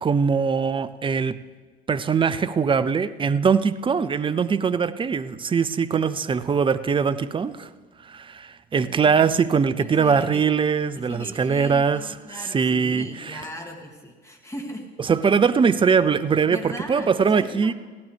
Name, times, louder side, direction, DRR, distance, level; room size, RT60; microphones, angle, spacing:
voice 1, 0.0-1.4 1.9-7.7 8.0-12.1 12.5-13.4 15.1-17.7, right 6 dB, 15° right, 14 dB, 0.5 m, -22 dB
voice 2, 8.7-9.5 9.8-10.4 11.0-14.9 16.4-17.7, left 1 dB, 10° left, 1 dB, 2.4 m, -38 dB
16.5 x 12.5 x 3.4 m, 1.4 s
hypercardioid pair, 70°, 32 cm